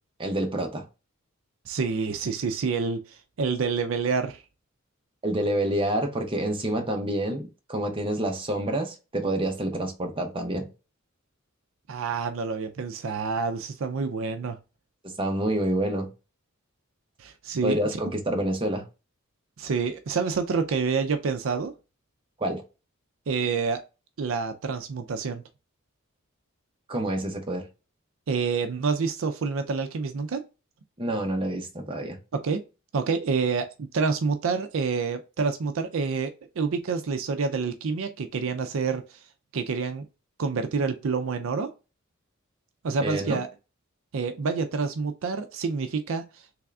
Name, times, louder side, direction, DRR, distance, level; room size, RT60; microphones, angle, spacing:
voice 1, 0.2-0.8 5.2-10.7 15.2-16.1 17.6-18.8 22.4-22.6 26.9-27.6 31.0-32.2 43.0-43.4, right 1 dB, 25° right, 0.7 m, -28 dB
voice 2, 1.7-4.4 11.9-14.6 17.2-17.8 19.6-21.7 23.3-23.8 24.2-25.4 28.3-30.4 32.3-32.6 32.9-39.2 39.5-40.1 40.4-41.7 42.8-43.5 44.1-46.3, right 5 dB, 70° right, 0.4 m, -28 dB
3.5 x 3.3 x 2.3 m
head